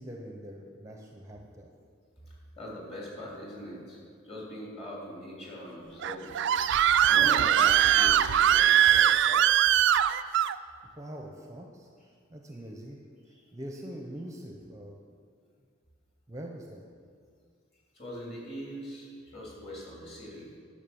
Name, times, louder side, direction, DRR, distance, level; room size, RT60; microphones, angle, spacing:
voice 1, 0.0-1.7 10.9-11.9 12.3-13.0 13.5-15.0 16.3-16.8, equal, 15° right, 1 dB, 0.7 m, -43 dB
voice 2, 2.3-4.0 4.2-6.4 7.0-9.7 13.3-13.4 17.9-20.6, equal, 30° left, -4 dB, 3.1 m, -41 dB
Screaming, 6.0-10.5, right 10 dB, 60° right, 0.3 m, -22 dB
11.0 x 6.5 x 7.0 m, 2.2 s
head